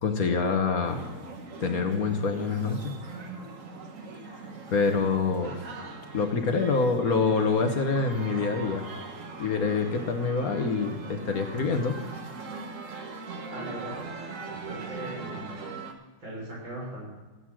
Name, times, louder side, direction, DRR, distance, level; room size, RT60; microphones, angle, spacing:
voice 1, 0.0-1.0 1.6-2.9 4.7-5.6 6.1-8.9 9.4-12.0, left 4 dB, 55° left, 5 dB, 1.4 m, -26 dB
sound 1, 0.9-15.9, right 3 dB, 45° right, 1.5 m, -40 dB
voice 2, 13.5-13.9 14.5-15.5 16.2-17.0, right 1 dB, 85° right, -5 dB, 6.6 m, -38 dB
15.0 x 8.1 x 6.2 m, 1.2 s
omnidirectional pair, 2.1 m